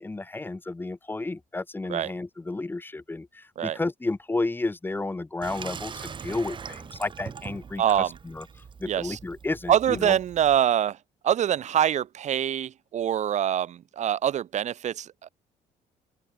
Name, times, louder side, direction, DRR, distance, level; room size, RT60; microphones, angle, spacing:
voice 1, 0.0-8.5 8.8-10.2, left 2 dB, 15° left, 3.6 m, -32 dB
Water tap faucet / Sink (filling or washing), 5.4-10.6, right 6 dB, 35° right, 3.1 m, -42 dB
voice 2, 7.8-8.1 8.9-9.2 9.7-11.0 11.2-15.3, right 10 dB, 50° right, 2.0 m, -24 dB
open air
cardioid pair, 125°, 15 cm